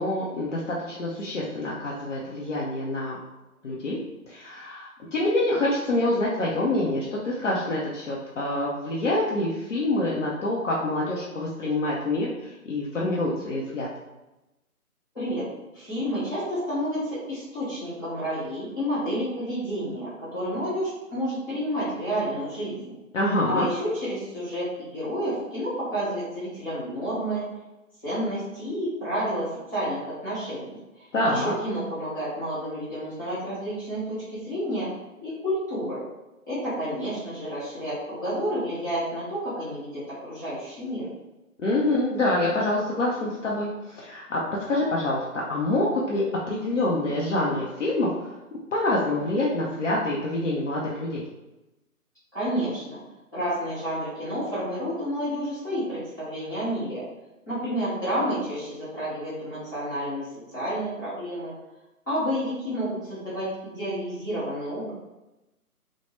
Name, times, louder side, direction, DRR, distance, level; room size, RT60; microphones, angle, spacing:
voice 1, 0.0-3.2 3.6-4.0 4.3-13.9 23.1-23.7 31.1-31.5 41.6-44.4 44.7-51.2, left 1 dB, 55° left, -5 dB, 0.6 m, -26 dB
voice 2, 15.1-15.4 15.7-22.8 23.5-27.4 28.0-30.6 31.0-34.9 35.2-36.0 36.5-41.1 52.3-53.0 53.3-57.0 57.5-60.3 60.5-61.5 62.1-64.9, equal, 15° left, -15 dB, 0.7 m, -30 dB
3.2 x 2.1 x 3.0 m, 1.0 s
figure-of-eight pair, 155°, 45 cm